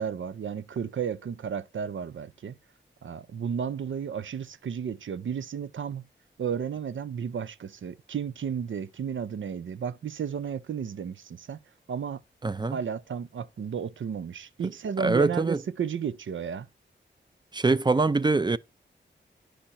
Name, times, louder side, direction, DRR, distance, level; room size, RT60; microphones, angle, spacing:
voice 1, 0.0-2.6 3.0-6.0 6.4-11.6 11.9-12.2 12.7-16.7, right 7 dB, 80° right, 0.6 m, -33 dB
voice 2, 12.4-12.8 15.0-15.6 17.5-18.6, right 3 dB, 20° right, 0.4 m, -24 dB
10.0 x 5.1 x 4.2 m
wide cardioid pair, 80°, 20 cm